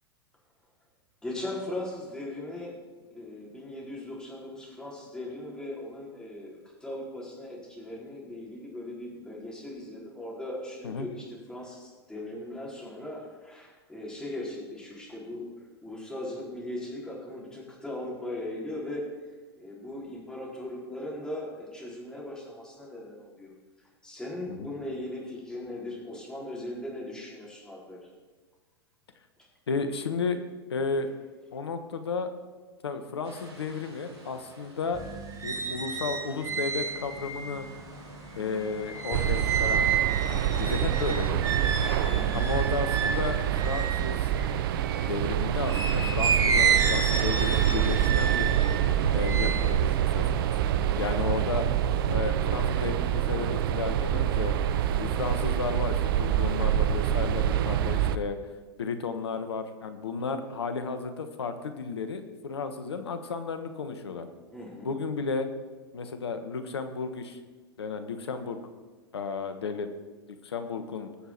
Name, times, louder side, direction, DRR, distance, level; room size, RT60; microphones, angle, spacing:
voice 1, 1.2-2.8 3.1-15.4 15.8-19.1 19.6-23.5 24.0-28.0 42.1-42.5 64.5-64.9, left 1 dB, 5° left, -4 dB, 4.4 m, -38 dB
voice 2, 29.7-30.4 30.7-31.1 31.5-32.3 32.8-35.0 35.4-37.7 38.3-39.9 40.3-41.7 42.3-43.4 43.6-44.3 45.1-48.5 49.1-50.5 51.0-51.6 52.1-54.5 54.9-58.4 58.8-64.3 64.8-65.5 65.9-67.4 67.8-68.6 69.1-69.9 70.3-71.2, left 5 dB, 75° left, 8 dB, 1.4 m, -33 dB
sound 1, 33.2-39.9, right 2 dB, 80° right, 3.4 m, -50 dB
sound 2, 34.9-45.1 45.6-51.1 51.5-52.1, right 6 dB, 25° right, 2.4 m, -31 dB
sound 3, 39.1-58.2, right 10 dB, 60° right, 0.7 m, -26 dB
20.0 x 7.0 x 4.6 m, 1.3 s
figure-of-eight pair, 100°, 14 cm